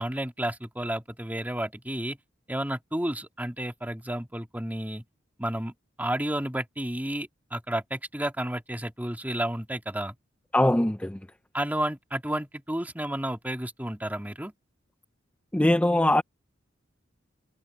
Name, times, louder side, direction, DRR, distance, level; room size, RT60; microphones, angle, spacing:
voice 1, 0.0-2.2 2.5-5.0 5.4-5.7 6.0-10.2 11.5-14.5, right 1 dB, 10° right, 2.2 m, -31 dB
voice 2, 10.5-11.2 15.5-16.2, left 1 dB, 5° left, 0.5 m, -21 dB
open air
head